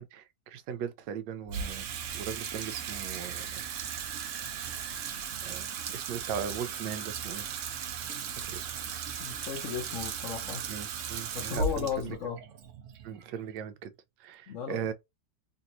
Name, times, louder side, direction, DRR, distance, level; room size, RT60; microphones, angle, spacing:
voice 1, 0.0-1.9 2.1-3.6 5.4-7.5 8.4-8.7 10.7-12.2 13.0-13.9 14.2-14.9, right 8 dB, 85° right, 1.2 m, -38 dB
Water tap faucet / Sink (filling or washing), 1.5-13.9, right 6 dB, 70° right, 0.7 m, -37 dB
voice 2, 9.2-10.6 11.3-12.4 14.5-14.8, left 7 dB, 60° left, 0.8 m, -35 dB
3.2 x 2.6 x 2.9 m
omnidirectional pair, 1.9 m